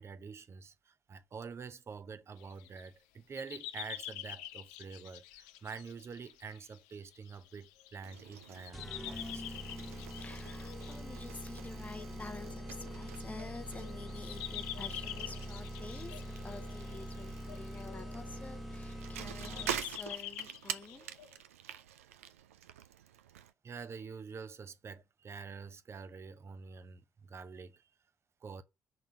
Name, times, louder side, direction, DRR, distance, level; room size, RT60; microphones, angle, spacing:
voice 1, 0.0-9.6 23.6-27.9 28.4-28.6, right 5 dB, 35° right, 0.7 m, -47 dB
sound 1, 2.4-2.9 3.4-21.3, left 13 dB, 70° left, 0.4 m, -47 dB
Bicycle, 8.0-23.5, right 10 dB, 75° right, 0.4 m, -47 dB
sound 2, 8.7-20.1, equal, ahead, 1.3 m, -44 dB
voice 2, 9.7-21.1, left 3 dB, 20° left, 0.9 m, -49 dB
5.9 x 3.6 x 5.8 m
figure-of-eight pair, 40°, 8 cm